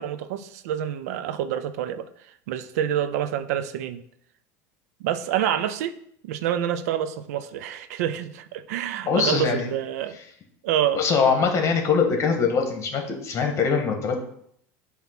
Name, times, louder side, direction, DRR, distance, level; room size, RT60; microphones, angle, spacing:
voice 1, 0.0-2.1 2.5-4.0 5.0-5.9 6.2-10.2 10.6-11.0, right 10 dB, 80° right, 11 dB, 0.5 m, -27 dB
voice 2, 9.1-9.7 10.9-14.2, left 5 dB, 35° left, 4 dB, 1.5 m, -22 dB
7.1 x 3.0 x 5.9 m, 0.68 s
supercardioid pair, 110°, 8 cm